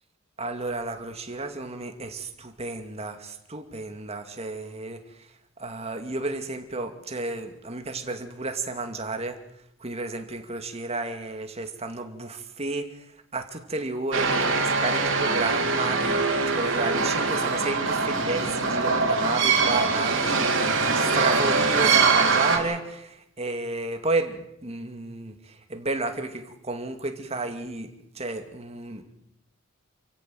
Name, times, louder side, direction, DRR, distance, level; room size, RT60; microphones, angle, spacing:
voice 1, 0.4-5.0 5.6-9.4 9.8-12.9 13.3-25.3 25.7-27.9 28.2-29.0, right 2 dB, 30° right, 6 dB, 2.5 m, -32 dB
sound 1, 14.1-22.6, right 4 dB, 65° right, 4.5 m, -23 dB
29.0 x 16.5 x 7.9 m, 0.79 s
head